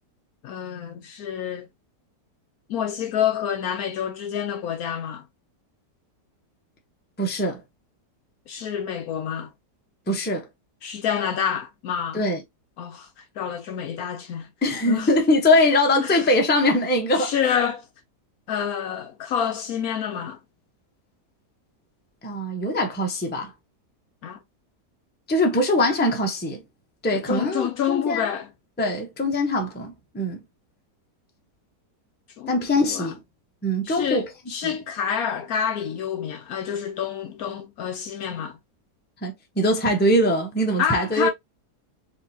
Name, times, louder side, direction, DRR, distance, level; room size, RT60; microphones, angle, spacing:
voice 1, 0.4-1.7 2.7-5.2 8.5-9.5 10.8-12.2 12.8-13.1 13.4-14.5 14.9-15.1 16.0-16.3 17.2-17.9 18.5-20.4 24.2-24.4 27.1-28.5 32.4-33.1 33.8-38.6 40.8-41.3, left 8 dB, 65° left, 1.0 m, -28 dB
voice 2, 7.2-7.6 10.1-10.5 12.1-12.4 14.6-17.3 22.2-23.5 25.3-26.6 27.0-28.2 28.8-30.4 32.5-33.2 33.6-34.3 39.2-41.3, left 1 dB, 10° left, 0.6 m, -22 dB
4.2 x 3.5 x 2.7 m
omnidirectional pair, 1.8 m